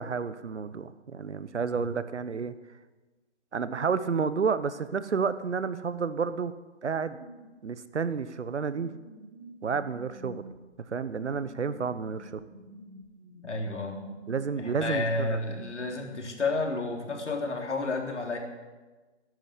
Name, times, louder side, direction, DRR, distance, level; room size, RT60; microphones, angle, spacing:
voice 1, 0.0-2.5 3.5-6.5 6.8-7.2 7.6-8.9 9.6-10.4 10.9-12.4 14.3-15.4, right 5 dB, 70° right, 14 dB, 1.2 m, -30 dB
sound 1, 6.8-7.7 8.5-16.5 16.8-17.7, right 1 dB, 40° right, 4.4 m, -49 dB
voice 2, 13.4-14.0 14.6-18.4, left 3 dB, 75° left, 2 dB, 3.5 m, -31 dB
14.0 x 11.0 x 8.5 m, 1.2 s
figure-of-eight pair, 140°, 36 cm